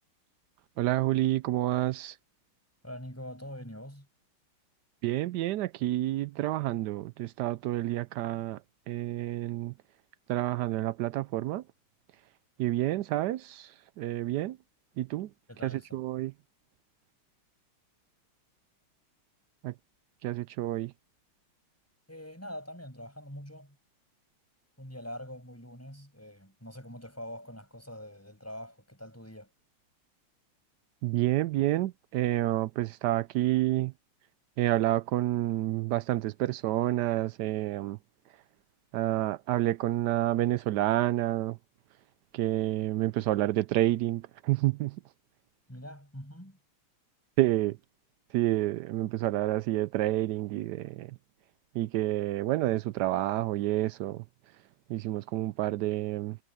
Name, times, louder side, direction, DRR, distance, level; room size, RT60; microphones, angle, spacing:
voice 1, 0.8-2.2 5.0-8.6 8.9-9.7 10.3-11.6 12.6-14.6 15.0-15.3 15.6-16.3 19.6-19.7 20.2-20.9 31.0-33.9 34.6-38.0 38.9-41.6 42.3-45.0 47.4-47.8 48.3-51.1 51.7-54.2 54.9-56.4, right 15 dB, 90° right, 0.9 m, -29 dB
voice 2, 2.8-4.1 15.5-16.0 22.1-23.8 24.8-29.5 45.7-46.6, equal, 5° left, 7.1 m, -44 dB
omnidirectional pair, 2.3 m